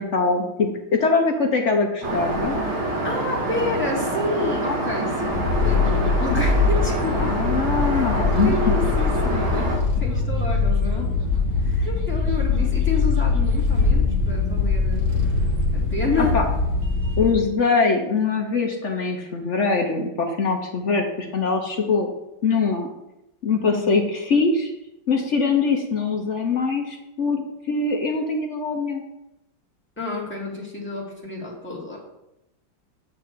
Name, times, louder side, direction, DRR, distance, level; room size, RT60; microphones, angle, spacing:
voice 1, 0.0-2.6 7.1-8.6 16.2-16.5 17.2-22.1 22.4-22.9 23.4-24.7 25.1-27.4 27.7-29.0, left 4 dB, 60° left, 2 dB, 0.8 m, -22 dB
Aircraft, 2.0-9.8, right 1 dB, 75° right, 2.3 m, -26 dB
voice 2, 3.0-7.4 7.8-11.2 11.6-15.1 15.7-16.4 23.6-23.9 30.0-32.0, left 2 dB, 5° left, -4 dB, 1.8 m, -29 dB
sound 1, 5.3-17.3, left 4 dB, 45° right, 1.3 m, -22 dB
8.7 x 3.3 x 6.7 m, 0.89 s
omnidirectional pair, 2.2 m